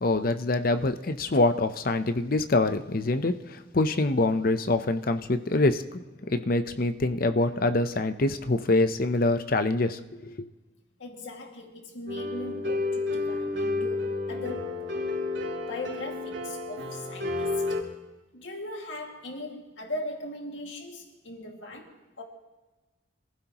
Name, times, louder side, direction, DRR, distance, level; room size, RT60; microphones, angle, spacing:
voice 1, 0.0-6.0 6.3-10.4, left 2 dB, 50° left, 9 dB, 0.8 m, -25 dB
voice 2, 11.0-15.0 15.7-17.6 18.3-22.2, left 2 dB, 80° left, 1 dB, 2.2 m, -39 dB
sound 1, 12.1-17.8, left 3 dB, 75° right, 2.8 m, -31 dB
26.5 x 15.0 x 3.0 m, 1.2 s
head